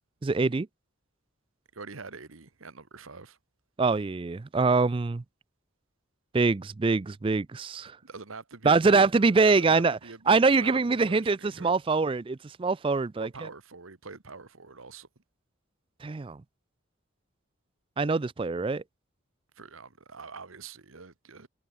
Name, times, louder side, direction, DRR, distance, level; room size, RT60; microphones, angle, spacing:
voice 1, 0.2-0.7 3.8-5.2 6.3-8.0 8.6-10.0 10.3-13.5 16.0-16.4 18.0-18.8, right 4 dB, 25° right, 0.3 m, -24 dB
voice 2, 1.7-3.4 8.0-9.0 9.4-11.7 13.2-15.1 19.6-21.5, right 4 dB, 80° right, 1.4 m, -44 dB
head